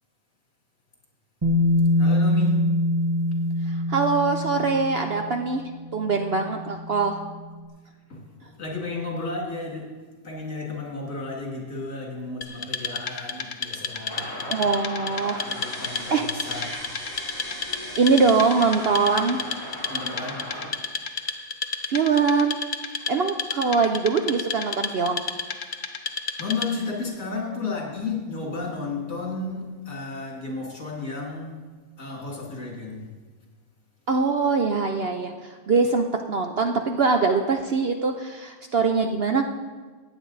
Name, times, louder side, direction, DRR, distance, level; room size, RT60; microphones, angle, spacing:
Bass guitar, 1.4-7.5, left 1 dB, 20° right, 1.2 m, -24 dB
voice 1, 2.0-2.8 8.1-10.0 10.2-14.5 15.4-16.9 19.9-20.5 26.4-31.6 32.0-33.1, left 3 dB, 65° left, -1 dB, 2.8 m, -33 dB
voice 2, 3.7-5.6 5.9-7.2 14.5-15.4 15.9-16.3 18.0-19.4 21.9-22.6 23.1-25.2 34.1-39.5, right 4 dB, 55° right, 5 dB, 0.7 m, -23 dB
Wood, 12.4-26.9, left 5 dB, 45° left, 0.7 m, -33 dB
sound 1, 14.1-20.7, equal, 15° left, 2.2 m, -37 dB
16.0 x 9.3 x 4.0 m, 1.4 s
omnidirectional pair, 1.5 m